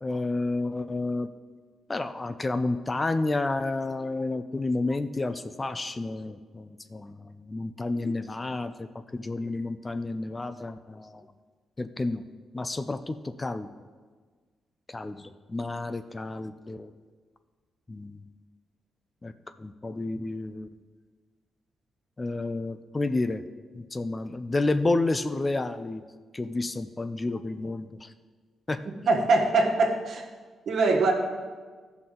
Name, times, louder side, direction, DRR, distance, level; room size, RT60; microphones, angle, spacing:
voice 1, 0.0-1.3 1.9-8.9 9.1-11.3 11.8-12.2 12.5-13.7 14.9-16.9 17.9-18.2 19.2-19.3 19.6-20.7 22.2-23.4 23.7-26.0 26.3-28.1 28.7-28.8, left 2 dB, 25° left, 10 dB, 0.4 m, -30 dB
voice 2, 29.1-30.2 30.7-31.1, right 3 dB, 65° right, 1 dB, 1.4 m, -22 dB
14.5 x 6.0 x 3.8 m, 1.5 s
cardioid pair, 95°, 0 cm